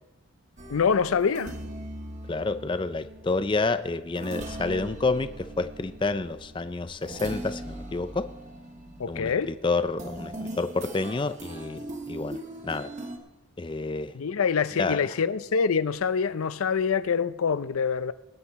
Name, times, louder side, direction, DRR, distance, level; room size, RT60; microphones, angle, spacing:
sound 1, 0.6-13.2, right 1 dB, 35° right, 1.5 m, -40 dB
voice 1, 0.7-1.5 9.0-9.5 14.1-18.1, left 6 dB, 85° left, 0.5 m, -25 dB
voice 2, 2.3-8.2 9.1-12.4 12.6-12.9 13.6-14.1 14.8-15.0, left 3 dB, 25° left, 0.4 m, -29 dB
19.5 x 9.7 x 4.2 m
head